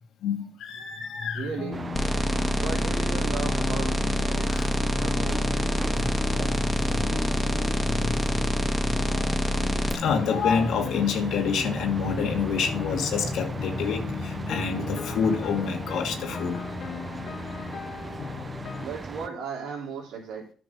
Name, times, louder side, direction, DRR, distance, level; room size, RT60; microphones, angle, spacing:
voice 1, 0.2-1.5 4.5-4.7 5.9-7.4 7.8-9.4 9.9-16.6 17.6-17.7, left 6 dB, 80° left, 1.6 m, -29 dB
voice 2, 1.3-1.9 2.6-4.0 4.3-5.4 18.8-20.5, right 5 dB, 85° right, 3.3 m, -36 dB
sound 1, 1.4-18.9, left 7 dB, 60° left, 0.6 m, -37 dB
sound 2, 1.7-19.3, right 3 dB, 30° right, 0.5 m, -36 dB
sound 3, 1.9-9.9, equal, 15° left, 1.6 m, -26 dB
10.5 x 6.0 x 5.4 m
cardioid pair, 90°, 0 cm